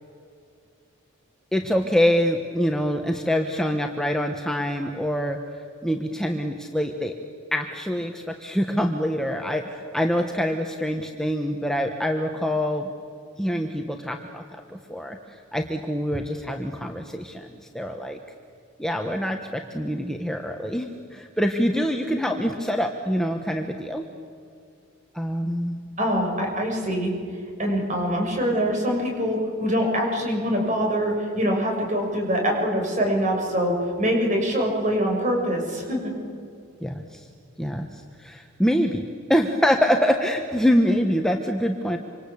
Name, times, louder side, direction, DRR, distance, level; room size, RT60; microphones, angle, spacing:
voice 1, 1.5-7.2 7.5-12.9 13.4-18.2 18.8-24.0 25.1-25.8 36.8-37.3 37.6-42.0, equal, ahead, 3 dB, 1.2 m, -25 dB
voice 2, 26.0-27.1 27.6-36.1, equal, 35° right, 1 dB, 7.0 m, -24 dB
27.0 x 26.0 x 8.5 m, 2.5 s
head